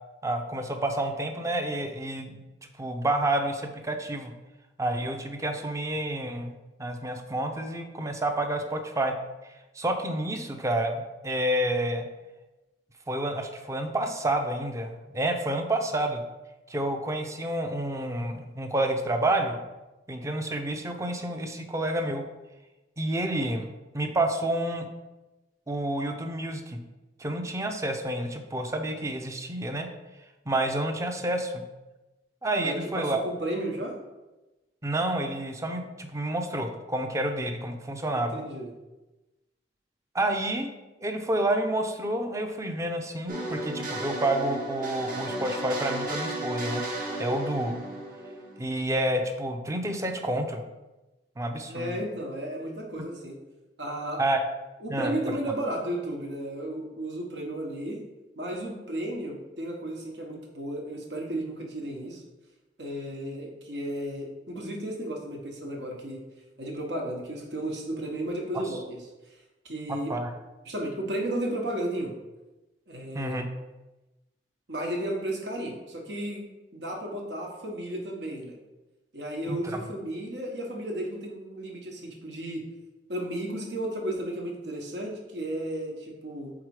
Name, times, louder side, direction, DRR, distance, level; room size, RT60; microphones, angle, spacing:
voice 1, 0.2-2.4 2.8-4.3 4.8-9.1 9.8-12.1 13.1-16.2 16.7-19.6 20.1-22.2 23.0-24.9 25.7-26.8 27.2-29.9 30.5-31.6 32.4-33.2 34.8-38.4 40.1-40.7 41.0-46.8 47.2-47.8 48.6-50.6 51.4-51.9 54.2-54.5 54.9-55.2 69.9-70.4 73.1-73.5 79.5-79.8, right 1 dB, 20° right, 5 dB, 0.6 m, -29 dB
voice 2, 32.6-34.0 38.1-38.7 51.7-53.4 53.8-54.2 54.8-58.0 58.4-62.2 62.8-66.2 66.6-69.0 69.6-70.1 70.6-72.2 72.9-73.4 74.7-76.4 76.7-78.6 79.1-82.6 83.1-86.5, right 1 dB, 75° right, 0 dB, 1.3 m, -33 dB
sound 1, 43.3-49.0, right 1 dB, 50° right, 1.2 m, -34 dB
4.8 x 4.0 x 4.8 m, 1.1 s
head